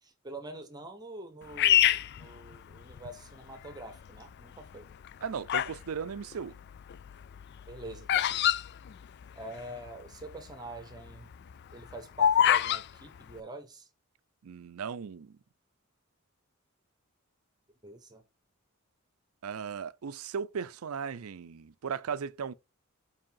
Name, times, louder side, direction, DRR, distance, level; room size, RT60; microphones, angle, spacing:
voice 1, 0.0-4.9 7.7-8.4 9.4-11.3 11.7-13.9 17.8-18.2, right 1 dB, 20° right, 1.0 m, -45 dB
Bird vocalization bird call bird song, 1.6-3.1 3.7-4.2 4.9-5.8 6.1-9.6 9.9-10.0 10.1-10.5 10.9-12.8, left 10 dB, 50° left, 0.3 m, -26 dB
voice 2, 5.2-6.6 14.4-15.4 19.4-22.5, right 6 dB, 85° right, 0.5 m, -37 dB
5.2 x 4.8 x 5.4 m
head